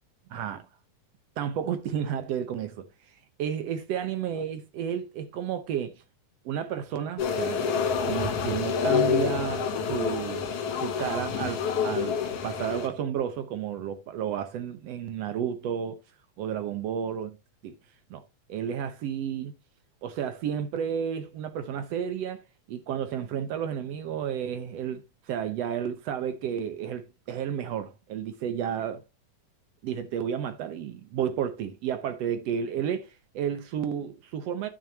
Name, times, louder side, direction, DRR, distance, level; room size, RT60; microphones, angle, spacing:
voice 1, 0.3-0.7 1.4-2.9 3.4-6.0 6.5-7.7 8.0-10.5 10.8-12.2 12.4-16.0 16.4-17.4 17.6-17.7 18.1-18.2 18.5-19.5 20.0-29.0 29.8-34.7, right 8 dB, 70° right, 1.7 m, -32 dB
sound 1, 7.2-12.9, left 6 dB, 60° left, 2.1 m, -27 dB
10.5 x 6.3 x 2.7 m
omnidirectional pair, 3.6 m